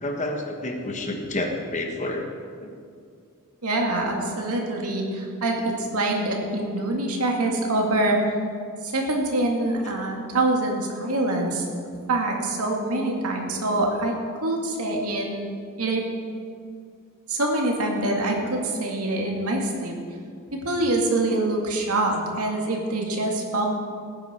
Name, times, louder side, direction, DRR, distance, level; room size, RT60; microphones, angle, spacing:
voice 1, 0.0-2.3 2.6-2.8 13.5-13.6, left 1 dB, 35° left, 3 dB, 1.4 m, -29 dB
voice 2, 3.6-8.2 8.8-11.7 12.1-14.1 14.4-15.5 15.8-16.0 17.3-20.0 20.5-23.7, right 2 dB, 85° right, 1 dB, 2.2 m, -25 dB
17.5 x 9.9 x 4.4 m, 2.2 s
head